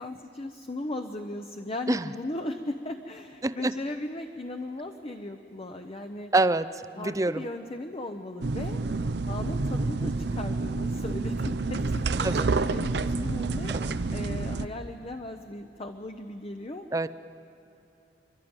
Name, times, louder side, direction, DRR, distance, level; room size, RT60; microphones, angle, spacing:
voice 1, 0.0-6.3 7.0-8.8 9.2-13.7 14.1-16.8, left 2 dB, 35° left, 5 dB, 0.7 m, -37 dB
voice 2, 3.4-3.7 6.3-6.7 6.9-7.4 12.2-12.5 13.7-13.9 16.9-17.1, right 2 dB, 20° right, 14 dB, 0.5 m, -25 dB
sound 1, 8.4-14.7, right 3 dB, 70° right, 0.6 m, -28 dB
28.5 x 12.5 x 8.9 m, 3.0 s
head